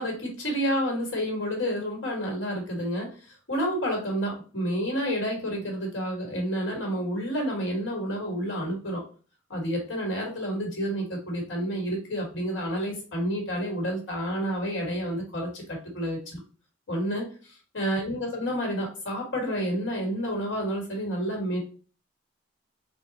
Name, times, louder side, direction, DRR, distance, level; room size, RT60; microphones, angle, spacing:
voice 1, 0.0-9.0 9.5-16.4 16.9-21.6, equal, 85° left, 0 dB, 1.5 m, -30 dB
3.6 x 2.2 x 4.0 m, 0.38 s
head